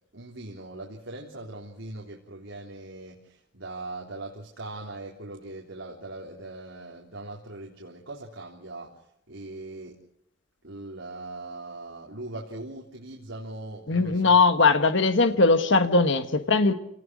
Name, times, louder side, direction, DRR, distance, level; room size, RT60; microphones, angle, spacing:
voice 1, 0.1-10.0 10.6-14.4, right 2 dB, 80° right, -1 dB, 3.6 m, -40 dB
voice 2, 13.9-16.7, left 3 dB, 65° left, 9 dB, 1.5 m, -20 dB
29.5 x 19.0 x 6.3 m, 0.76 s
head